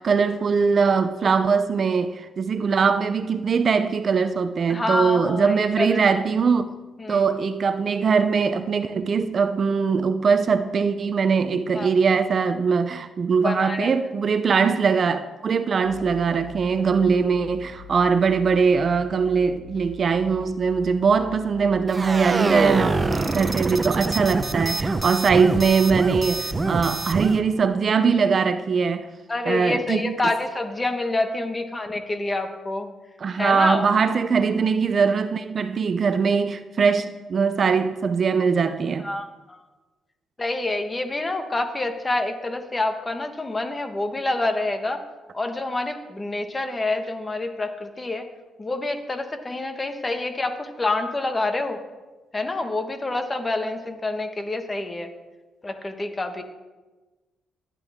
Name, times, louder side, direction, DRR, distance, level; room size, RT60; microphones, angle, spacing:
voice 1, 0.0-6.7 7.1-29.1 29.5-30.1 33.2-39.1, right 5 dB, 45° right, 0.7 m, -21 dB
voice 2, 4.7-6.0 7.0-7.2 11.7-11.9 13.4-13.9 29.3-32.9 33.4-33.9 39.0-39.6 40.4-45.0 45.3-48.3 48.6-51.8 52.3-55.1 55.6-56.4, left 2 dB, 20° left, 1.7 m, -27 dB
sound 1, 15.8-23.3, left 8 dB, 50° left, 2.3 m, -43 dB
sound 2, 21.9-27.4, right 3 dB, 25° right, 1.1 m, -25 dB
18.5 x 11.0 x 3.7 m
cardioid pair, 90°, 0 cm